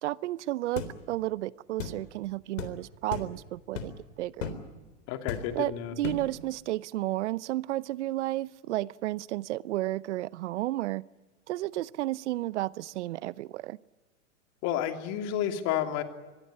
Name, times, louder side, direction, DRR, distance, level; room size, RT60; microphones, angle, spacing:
voice 1, 0.0-4.5 5.5-11.0 11.5-13.8, right 16 dB, 65° right, 0.7 m, -32 dB
sound 1, 0.8-1.0 1.8-2.0 2.6-2.7 3.1-3.3 3.8-4.0 4.4-4.6 5.3-5.6 6.0-6.3, left 6 dB, 75° left, 3.8 m, -35 dB
voice 2, 5.1-5.9 14.6-16.0, left 10 dB, 45° left, 3.0 m, -30 dB
25.0 x 20.0 x 8.7 m
hypercardioid pair, 115°, 38 cm